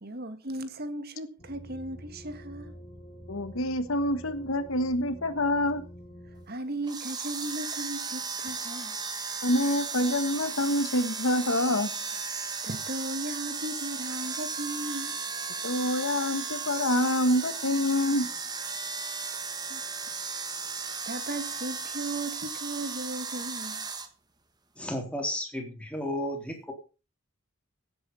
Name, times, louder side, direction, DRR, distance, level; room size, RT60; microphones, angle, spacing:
voice 1, 0.0-2.7 6.5-9.0 12.6-15.2 19.7-19.8 20.7-23.9, right 1 dB, 45° right, 1.9 m, -36 dB
sound 1, 1.4-6.5, right 1 dB, 35° left, 2.9 m, -47 dB
voice 2, 3.3-5.8 9.4-11.9 15.6-18.3, left 1 dB, 75° left, 1.5 m, -26 dB
sound 2, 6.8-24.1, right 5 dB, 20° right, 1.6 m, -35 dB
voice 3, 24.8-26.7, left 1 dB, 5° left, 3.7 m, -33 dB
16.5 x 8.4 x 5.6 m
head